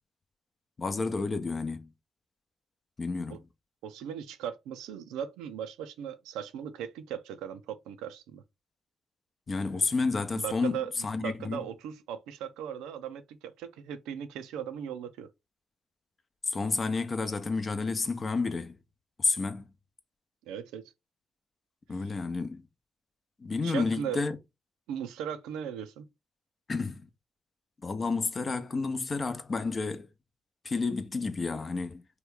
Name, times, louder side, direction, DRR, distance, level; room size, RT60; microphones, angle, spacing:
voice 1, 0.8-1.9 3.0-3.4 9.5-11.6 16.5-18.8 19.2-19.7 21.9-22.6 23.4-24.4 26.7-27.1 27.8-30.1 30.6-32.2, left 4 dB, 45° left, 0.6 m, -30 dB
voice 2, 3.8-8.4 10.3-10.9 11.2-15.3 20.5-20.8 23.6-24.2 24.9-26.1, right 8 dB, 90° right, 0.4 m, -38 dB
3.0 x 2.2 x 3.5 m
supercardioid pair, 55°, 0 cm